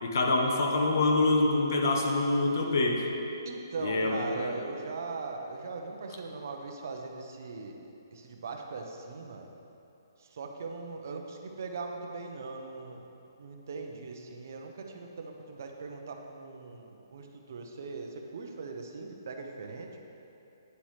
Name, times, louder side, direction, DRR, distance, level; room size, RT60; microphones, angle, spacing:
voice 1, 0.0-3.0 3.8-4.5, left 2 dB, 50° left, 1 dB, 0.9 m, -26 dB
voice 2, 3.4-7.8 8.1-9.5 10.2-13.1 13.4-20.0, right 4 dB, 45° right, 3 dB, 0.6 m, -40 dB
9.5 x 7.2 x 3.2 m, 2.8 s
hypercardioid pair, 175°, 2 cm